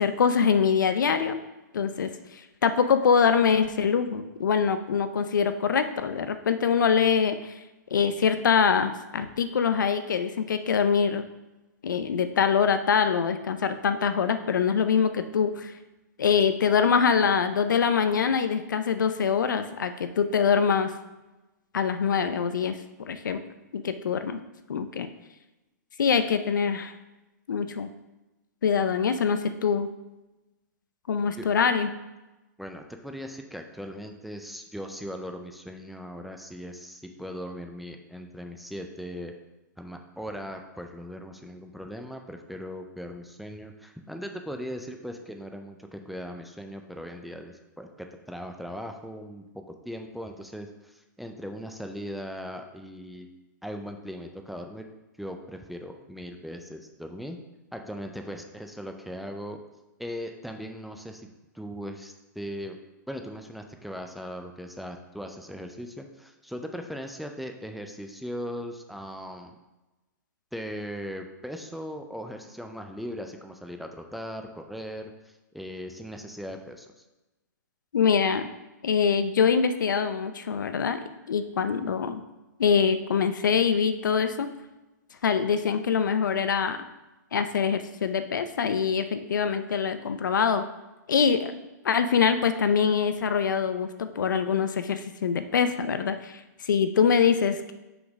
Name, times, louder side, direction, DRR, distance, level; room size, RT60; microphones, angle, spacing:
voice 1, 0.0-1.4 1.7-7.5 7.9-11.2 11.8-15.7 16.2-20.9 21.7-22.8 23.1-23.4 23.7-24.4 24.7-25.1 26.0-26.9 27.5-27.9 28.6-29.9 31.1-31.9 77.9-78.5 78.8-82.2 82.6-84.5 85.2-86.8 87.3-90.6 91.1-91.5 91.8-97.7, left 6 dB, 90° left, 10 dB, 0.6 m, -24 dB
voice 2, 32.6-39.3 39.8-53.3 53.6-54.9 55.2-57.4 57.7-59.6 60.0-61.3 61.5-62.8 63.1-69.6 70.5-77.0, equal, ahead, 4 dB, 0.4 m, -39 dB
5.8 x 3.9 x 5.2 m, 1.0 s
hypercardioid pair, 145°, 10 cm